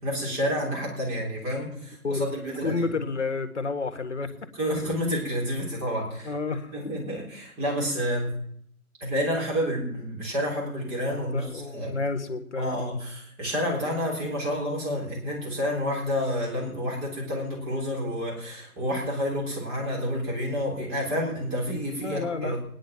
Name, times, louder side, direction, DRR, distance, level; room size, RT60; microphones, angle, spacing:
voice 1, 0.0-2.9 4.5-6.3 6.7-8.4 9.0-12.0 12.6-22.6, equal, 15° right, -2 dB, 3.6 m, -29 dB
voice 2, 2.6-4.5 4.7-4.9 6.2-6.7 11.1-13.0 22.0-22.6, left 3 dB, 50° left, 9 dB, 1.8 m, -30 dB
20.0 x 10.0 x 5.9 m, 0.67 s
figure-of-eight pair, 145°, 44 cm